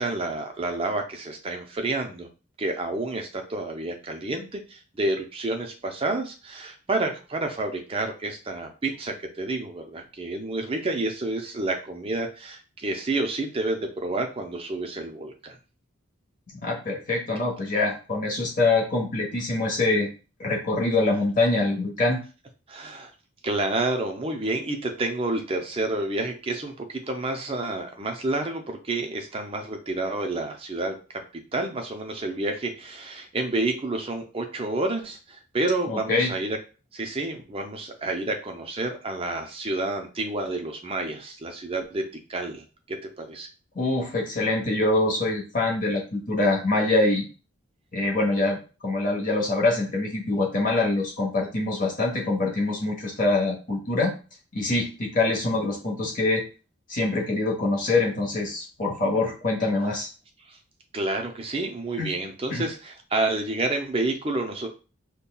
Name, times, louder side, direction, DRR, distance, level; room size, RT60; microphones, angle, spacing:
voice 1, 0.0-2.3 2.6-15.6 22.7-23.1 23.4-31.2 31.5-36.6 36.9-43.5 60.5-60.6 60.9-64.7, right 2 dB, 25° right, 4 dB, 0.5 m, -29 dB
voice 2, 16.5-20.1 20.4-22.2 35.9-36.3 43.7-47.2 47.9-54.1 54.5-56.4 56.9-60.1 62.0-62.1 62.5-62.6, left 2 dB, 40° left, -1 dB, 1.0 m, -24 dB
5.3 x 2.2 x 2.3 m, 0.34 s
head